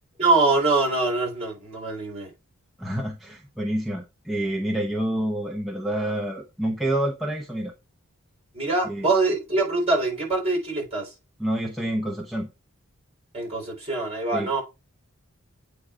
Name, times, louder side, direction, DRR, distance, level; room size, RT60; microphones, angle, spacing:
voice 1, 0.2-2.3 8.5-11.1 13.3-14.6, right 3 dB, 30° right, 4.4 m, -24 dB
voice 2, 2.8-7.7 8.9-9.1 11.4-12.5 14.3-14.5, right 1 dB, ahead, 0.8 m, -28 dB
8.5 x 3.6 x 5.0 m
head